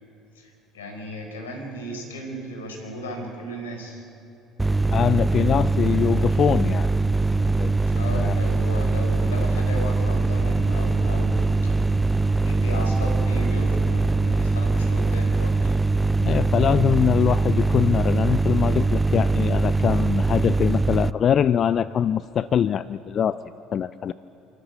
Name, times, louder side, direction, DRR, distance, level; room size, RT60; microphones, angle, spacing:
voice 1, 0.3-4.0 7.9-11.8 12.3-15.7, equal, 90° left, 2 dB, 4.8 m, -35 dB
sound 1, 4.6-21.1, right 3 dB, 10° right, 0.5 m, -22 dB
voice 2, 4.9-6.9 7.6-7.7 8.1-8.4 16.2-23.4 23.7-24.1, left 8 dB, 45° left, 15 dB, 0.5 m, -23 dB
28.0 x 13.5 x 8.4 m, 3.0 s
hypercardioid pair, 65°, 0 cm